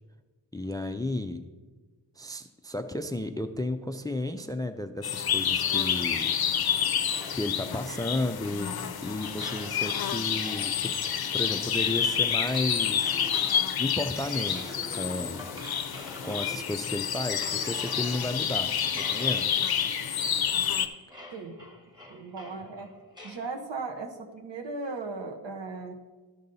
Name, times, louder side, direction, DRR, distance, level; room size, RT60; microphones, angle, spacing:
voice 1, 0.5-1.4 2.2-6.3 7.3-10.9 11.3-13.2 13.8-15.4 15.7-19.5, left 1 dB, 10° left, 9 dB, 0.4 m, -33 dB
sound 1, 5.0-20.9, left 8 dB, 55° left, 0.6 m, -29 dB
sound 2, 7.1-16.9 17.3-23.5, left 2 dB, 10° right, 1.2 m, -45 dB
voice 2, 22.1-22.9 23.2-26.0, right 3 dB, 65° right, 4 dB, 1.3 m, -37 dB
13.0 x 5.4 x 4.0 m, 1.3 s
cardioid pair, 70°, 46 cm